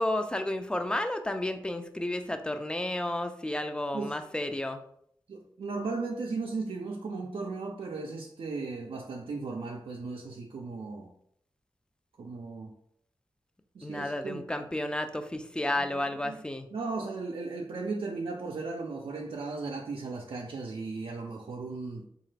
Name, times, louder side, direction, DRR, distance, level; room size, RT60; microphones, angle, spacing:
voice 1, 0.0-4.8 13.8-16.7, left 1 dB, 10° left, 8 dB, 0.4 m, -32 dB
voice 2, 5.3-11.1 12.2-12.7 13.7-14.4 15.6-16.4 16.7-22.1, right 3 dB, 85° right, -1 dB, 0.4 m, -36 dB
3.7 x 2.4 x 3.2 m, 0.68 s
wide cardioid pair, 75°, 9 cm